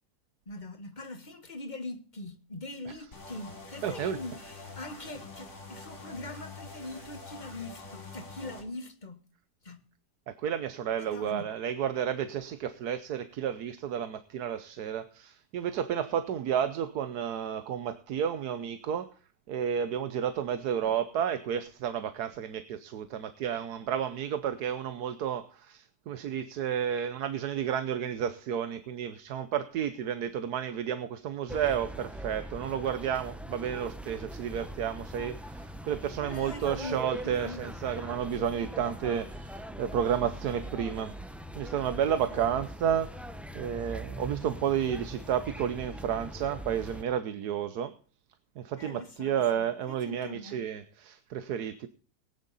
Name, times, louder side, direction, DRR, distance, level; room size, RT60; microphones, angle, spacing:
voice 1, 0.4-9.2 9.6-9.8 11.0-11.5 36.3-37.6 48.8-50.7, left 1 dB, 30° left, 1.5 m, -42 dB
sound 1, 3.1-8.6, left 3 dB, 45° left, 3.8 m, -46 dB
voice 2, 3.8-4.2 10.3-19.1 19.5-41.1 41.6-43.3 43.5-47.9 48.6-51.9, right 8 dB, 75° right, 1.4 m, -31 dB
sound 2, 31.5-47.0, equal, ahead, 0.7 m, -41 dB
18.5 x 10.5 x 4.1 m
omnidirectional pair, 1.7 m